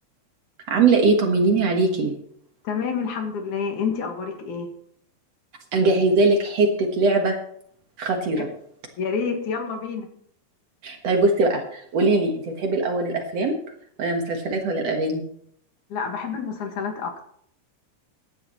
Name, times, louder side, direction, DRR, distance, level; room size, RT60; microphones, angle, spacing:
voice 1, 0.7-2.1 5.7-7.4 8.0-8.5 10.8-13.5 14.0-15.2, right 3 dB, 55° right, 3 dB, 2.3 m, -21 dB
voice 2, 2.6-4.7 8.3-8.5 9.0-10.1 15.9-17.2, left 5 dB, 65° left, 4 dB, 3.1 m, -28 dB
15.5 x 11.5 x 3.1 m, 0.66 s
omnidirectional pair, 3.9 m